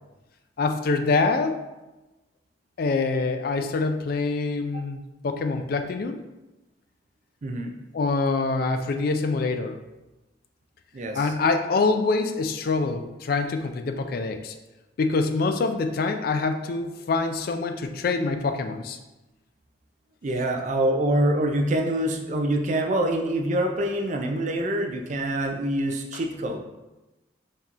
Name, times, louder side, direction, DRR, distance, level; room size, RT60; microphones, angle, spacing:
voice 1, 0.6-1.6 2.8-6.2 7.9-9.8 11.1-14.5 15.0-19.0, left 3 dB, 55° left, 7 dB, 0.3 m, -25 dB
voice 2, 7.4-7.8 10.9-11.3 20.2-26.6, right 1 dB, 40° right, 3 dB, 0.4 m, -25 dB
5.3 x 2.8 x 2.4 m, 1.0 s
head